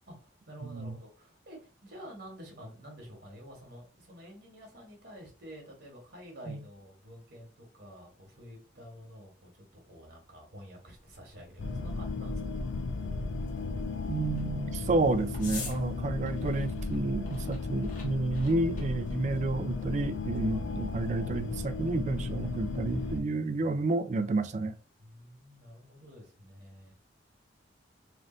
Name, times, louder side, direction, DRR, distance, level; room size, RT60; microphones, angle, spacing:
voice 1, 0.1-12.5 15.8-16.6 20.5-21.2 22.8-23.9 25.0-26.9, equal, 55° right, 1.3 m, -50 dB
sound 1, 10.9-21.9, left 3 dB, 40° left, 1.0 m, -49 dB
sound 2, 11.6-23.2, left 3 dB, 75° left, 0.5 m, -35 dB
voice 2, 14.1-24.8, right 2 dB, 35° right, 0.3 m, -30 dB
3.3 x 2.5 x 3.8 m
head